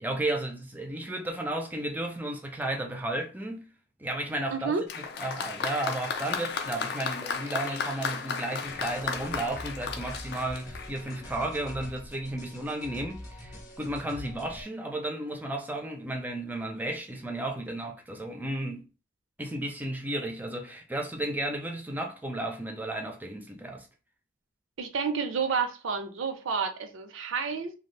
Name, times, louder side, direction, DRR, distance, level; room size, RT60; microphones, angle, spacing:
voice 1, 0.0-3.7 4.0-18.9 19.4-23.9, right 1 dB, 10° right, 0.4 m, -33 dB
voice 2, 4.5-4.8 24.8-27.7, right 5 dB, 80° right, 0.5 m, -30 dB
Applause, 4.9-11.3 12.2-12.3, left 5 dB, 55° left, 0.4 m, -34 dB
sound 1, 8.6-14.6, left 1 dB, 20° left, 0.7 m, -44 dB
2.7 x 2.3 x 3.2 m
head